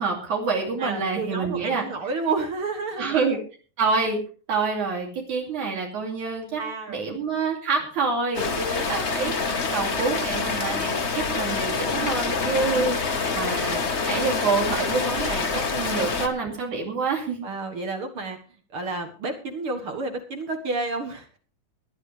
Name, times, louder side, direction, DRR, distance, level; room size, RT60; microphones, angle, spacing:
voice 1, 0.0-1.8 3.0-3.4 3.8-4.2 4.5-6.6 6.9-17.5, right 4 dB, 70° right, 0 dB, 4.0 m, -27 dB
voice 2, 0.8-3.2 6.6-7.0 16.0-16.1 17.4-18.4 18.7-21.4, right 3 dB, 50° right, 4 dB, 2.1 m, -30 dB
Rain, 8.3-16.3, left 4 dB, 55° left, 0.7 m, -26 dB
20.0 x 11.0 x 3.3 m, 0.38 s
omnidirectional pair, 3.6 m